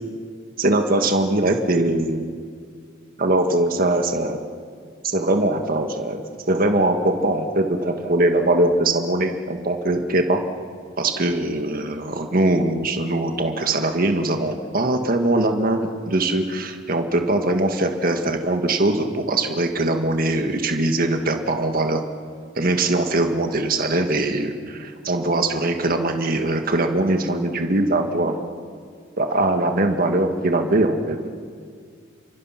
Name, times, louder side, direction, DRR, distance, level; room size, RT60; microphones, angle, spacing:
voice 1, 0.6-2.2 3.2-4.5 5.0-10.4 11.0-22.0 22.5-28.4 29.2-31.3, right 2 dB, 50° right, 5 dB, 1.7 m, -21 dB
29.5 x 24.5 x 5.9 m, 2.1 s
head